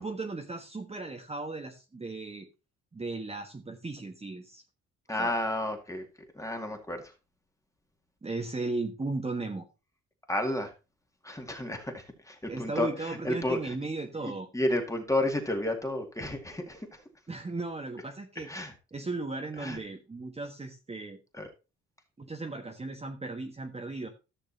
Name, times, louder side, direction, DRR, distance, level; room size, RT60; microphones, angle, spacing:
voice 1, 0.0-2.5 2.9-4.6 5.1-5.3 8.2-9.7 12.5-14.5 17.3-18.5 18.9-21.2 22.2-24.1, right 3 dB, 20° right, 2 dB, 1.4 m, -36 dB
voice 2, 5.1-6.0 6.4-7.0 10.3-10.7 11.2-12.9 13.2-13.6 14.5-16.8 18.5-18.7 19.6-19.8 21.4-21.5, left 1 dB, 10° left, 4 dB, 2.2 m, -31 dB
14.0 x 6.6 x 2.8 m, 0.29 s
cardioid pair, 90°, 30 cm